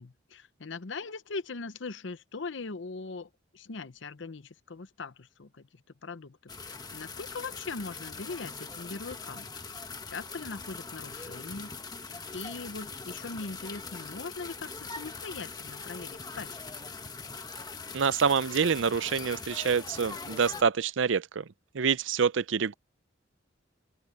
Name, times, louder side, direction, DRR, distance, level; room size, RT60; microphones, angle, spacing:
voice 1, 0.0-6.4 6.7-9.5 10.1-11.7 12.0-16.6, left 4 dB, 70° left, 0.8 m, -40 dB
sound 1, 6.5-20.6, left 4 dB, 20° left, 1.2 m, -42 dB
voice 2, 17.9-21.4 21.7-22.7, right 6 dB, 70° right, 0.6 m, -26 dB
head